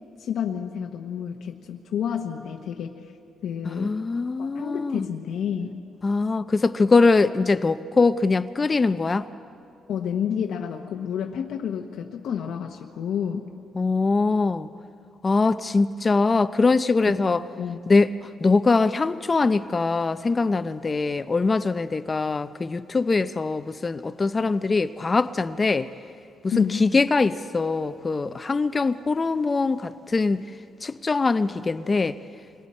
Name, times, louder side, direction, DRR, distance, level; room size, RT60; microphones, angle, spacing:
voice 1, 0.2-3.1 3.4-4.0 4.4-5.8 9.9-13.5 17.1-17.3 17.6-17.8 26.5-26.9, left 8 dB, 75° left, 2 dB, 1.1 m, -30 dB
voice 2, 3.6-5.1 6.0-9.3 13.8-14.7 15.2-17.4 17.9-25.9 26.4-30.4 30.8-32.2, left 3 dB, 30° left, 12 dB, 0.6 m, -22 dB
27.5 x 22.5 x 4.4 m, 2.4 s
cardioid pair, 90°, 0 cm